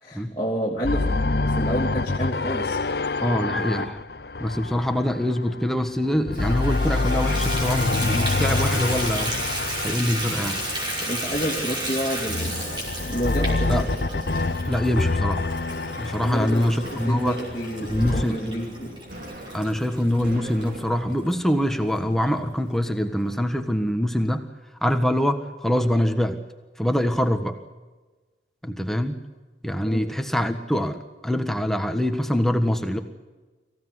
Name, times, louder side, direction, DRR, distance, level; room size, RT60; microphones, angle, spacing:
voice 1, 0.0-2.8 11.0-12.6 13.0-13.9 16.2-16.7 17.0-19.0 29.9-30.0, equal, 25° left, -3 dB, 3.0 m, -29 dB
sound 1, 0.8-5.8 6.2-11.5 12.2-18.2, left 3 dB, 60° left, 0.8 m, -27 dB
voice 2, 3.2-4.0 4.4-9.4 9.8-10.6 13.7-13.8 14.7-15.4 16.0-17.4 17.8-18.6 19.5-24.5 24.8-26.4 26.8-27.6 28.6-29.2 29.6-33.0, equal, ahead, 7 dB, 1.5 m, -24 dB
Water tap faucet / Bathtub (filling or washing), 6.3-20.7 21.3-21.4 21.9-22.0 22.3-22.4, right 1 dB, 25° right, 5.4 m, -33 dB
sound 2, 10.1-23.6, right 1 dB, 50° right, 4.4 m, -42 dB
25.0 x 16.0 x 9.6 m, 1.3 s
head